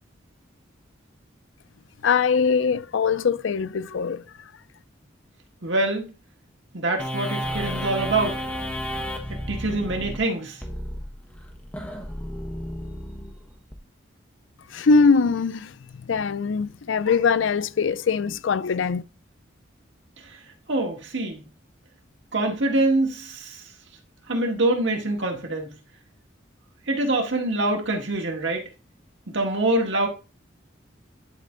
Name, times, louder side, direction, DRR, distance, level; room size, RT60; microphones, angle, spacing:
voice 1, 2.0-4.2 14.7-19.0, left 5 dB, 85° left, 0.5 m, -22 dB
voice 2, 5.6-6.1 6.7-8.5 9.5-10.6 20.7-21.5 22.3-23.6 24.3-25.7 26.9-28.6 29.3-30.1, right 2 dB, 75° right, 1.8 m, -25 dB
sound 1, 7.0-13.8, equal, 10° left, 1.1 m, -32 dB
10.5 x 4.2 x 3.9 m
head